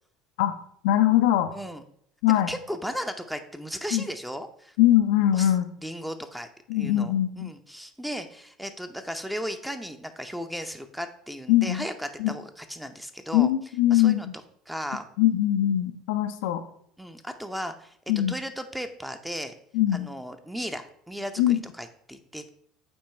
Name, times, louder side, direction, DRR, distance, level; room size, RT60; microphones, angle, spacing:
voice 1, 0.8-1.5 2.2-2.5 3.9-4.0 4.8-5.7 6.7-7.5 11.5-11.9 12.2-12.3 13.3-14.3 15.2-16.6 18.1-18.3 19.7-20.1 21.4-21.6, left 12 dB, 70° left, 7 dB, 0.5 m, -22 dB
voice 2, 1.5-1.8 2.3-4.8 5.3-5.5 5.8-6.5 6.7-13.5 13.9-14.3 14.7-15.1 17.0-18.0 18.3-19.5 19.9-22.5, equal, 5° right, 8 dB, 0.8 m, -36 dB
8.7 x 3.1 x 4.4 m, 0.64 s
hypercardioid pair, 70°, 0 cm